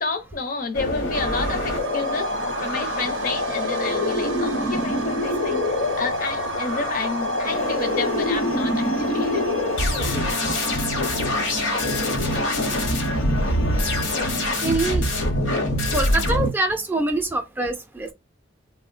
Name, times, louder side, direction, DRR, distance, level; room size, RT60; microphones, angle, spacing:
voice 1, 0.0-2.3 2.6-9.6 10.0-10.3 12.4-12.8, left 4 dB, 45° left, 0.6 m, -30 dB
sound 1, 0.7-16.5, left 1 dB, 70° left, 0.9 m, -25 dB
sound 2, 1.1-14.7, right 4 dB, 70° right, 0.5 m, -34 dB
sound 3, 7.4-14.4, left 3 dB, 90° left, 0.5 m, -35 dB
voice 2, 11.5-12.4 12.9-13.1 13.8-13.9 14.6-15.1 15.9-18.1, right 2 dB, 10° right, 0.4 m, -26 dB
3.5 x 2.1 x 2.4 m
head